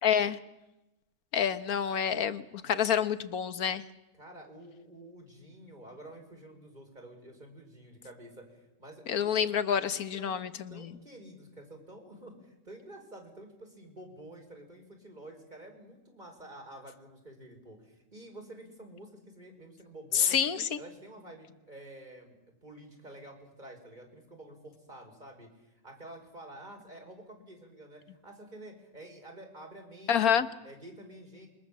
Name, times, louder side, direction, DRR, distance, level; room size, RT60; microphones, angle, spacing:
voice 1, 0.0-0.4 1.3-3.8 9.1-10.9 20.1-20.8 30.1-30.5, left 8 dB, 75° left, 12 dB, 1.6 m, -28 dB
voice 2, 4.1-9.6 10.2-10.4 10.7-20.4 20.7-22.4 22.6-31.5, right 1 dB, 30° right, 2 dB, 5.6 m, -49 dB
27.0 x 23.0 x 7.6 m, 0.95 s
omnidirectional pair, 1.6 m